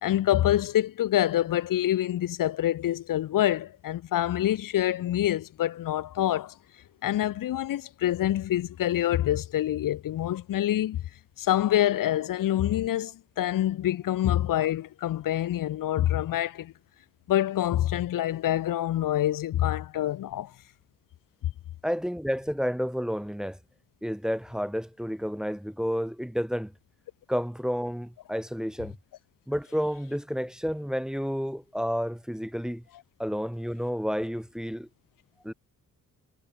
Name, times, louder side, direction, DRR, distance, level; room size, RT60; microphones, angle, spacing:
voice 1, 0.0-6.5 7.0-11.0 11.4-16.7 17.3-20.5, left 13 dB, 85° left, 1.1 m, -26 dB
voice 2, 21.8-23.6 24.0-26.7 27.3-28.9 29.5-32.8 33.2-34.9 35.4-35.5, equal, ahead, 1.4 m, -30 dB
cardioid pair, 105°, 32 cm